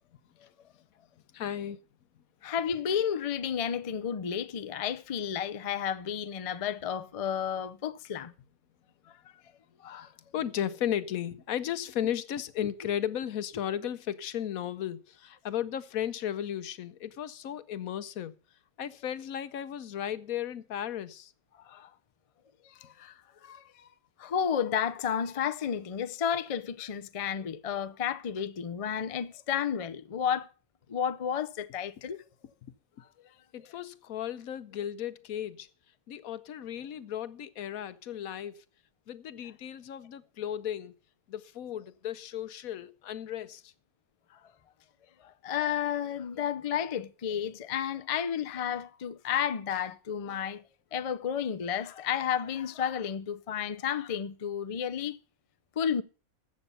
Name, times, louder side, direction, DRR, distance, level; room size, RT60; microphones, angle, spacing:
voice 1, 1.3-1.8 9.9-18.3 18.8-21.3 33.5-35.7 36.1-38.6 39.1-40.9 41.3-43.7, left 10 dB, 75° left, 1.2 m, -35 dB
voice 2, 2.4-8.3 9.8-10.1 21.7-21.9 22.8-23.1 23.4-23.9 24.2-30.5 30.9-32.2 45.4-50.6 50.9-55.2 55.8-56.0, left 8 dB, 55° left, 0.3 m, -32 dB
14.0 x 7.8 x 5.5 m
omnidirectional pair, 1.5 m